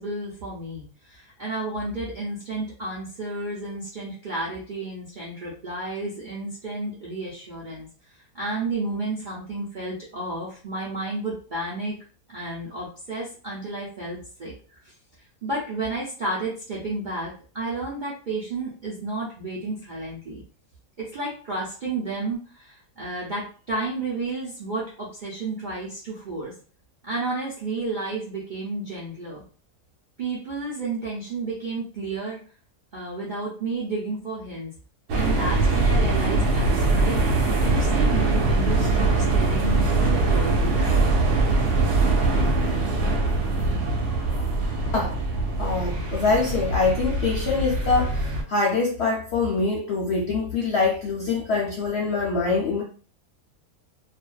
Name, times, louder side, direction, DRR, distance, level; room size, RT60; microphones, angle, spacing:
voice 1, 0.0-7.9 8.3-12.0 12.3-14.5 14.8-14.9 15.4-20.4 21.0-26.5 27.0-29.4 30.2-32.4 32.9-34.7 35.2-37.2 37.6-41.0, right 2 dB, 65° right, -5 dB, 0.4 m, -31 dB
sound 1, 35.1-48.4, right 2 dB, 90° right, 1.1 m, -22 dB
voice 2, 45.6-52.8, left 4 dB, 75° left, -3 dB, 0.6 m, -24 dB
2.5 x 2.2 x 2.2 m, 0.40 s
omnidirectional pair, 1.7 m